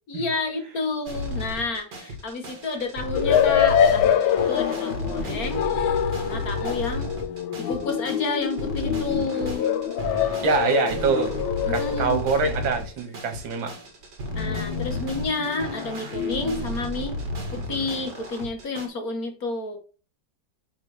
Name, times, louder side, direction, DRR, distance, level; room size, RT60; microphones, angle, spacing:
voice 1, 0.1-5.6 6.1-7.1 7.6-9.7 11.7-12.2 14.3-17.1 17.7-19.8, left 3 dB, 55° left, 1.5 m, -30 dB
sound 1, 1.1-18.9, equal, 60° right, 2.2 m, -33 dB
sound 2, 3.1-12.6 14.3-16.7, left 9 dB, 85° left, 1.4 m, -25 dB
voice 2, 10.4-11.4 11.7-13.8, right 5 dB, 80° right, 2.0 m, -24 dB
9.4 x 3.7 x 3.3 m
omnidirectional pair, 2.1 m